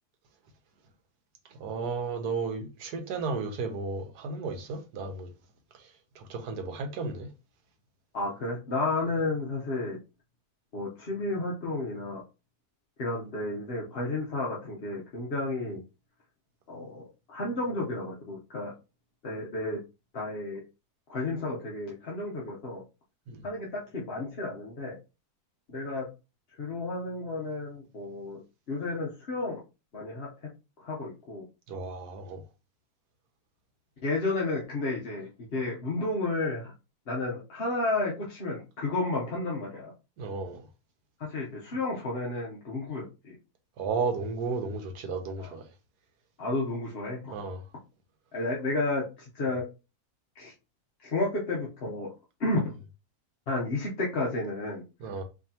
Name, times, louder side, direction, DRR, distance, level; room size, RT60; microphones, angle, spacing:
voice 1, 1.6-5.3 6.2-7.3 23.3-23.4 31.7-32.4 40.2-40.6 43.8-45.6 47.3-47.6 55.0-55.2, right 4 dB, 80° right, 1.4 m, -33 dB
voice 2, 8.1-10.0 10.7-12.2 13.0-15.8 16.7-17.0 17.3-18.7 19.2-19.8 20.1-20.6 21.1-22.8 23.4-25.0 25.7-26.1 26.6-28.4 28.7-29.6 29.9-30.3 30.8-31.4 34.0-36.7 37.1-39.9 41.2-43.3 45.4-45.5 46.4-47.3 48.3-49.1 49.3-49.6 50.4-50.5 51.0-52.1 52.4-52.7 53.5-54.8, left 2 dB, 45° left, 1.0 m, -32 dB
4.8 x 2.9 x 2.8 m
omnidirectional pair, 1.7 m